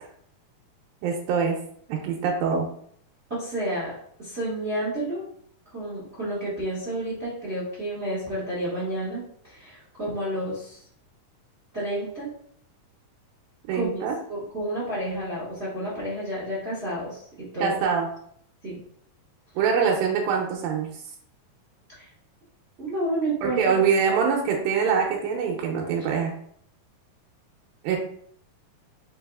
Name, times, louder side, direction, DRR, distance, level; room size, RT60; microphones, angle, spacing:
voice 1, 1.0-1.6 1.9-2.7 13.7-14.2 17.6-18.1 19.6-20.9 23.4-26.3 27.8-28.0, right 6 dB, 85° right, 1 dB, 2.4 m, -24 dB
voice 2, 3.3-5.2 5.7-10.8 11.7-12.3 13.7-14.0 14.3-17.7 18.6-18.7 22.0-22.1 22.8-23.6 24.1-24.2, right 1 dB, 60° right, -8 dB, 0.6 m, -30 dB
4.7 x 4.6 x 2.3 m, 0.65 s
omnidirectional pair, 4.2 m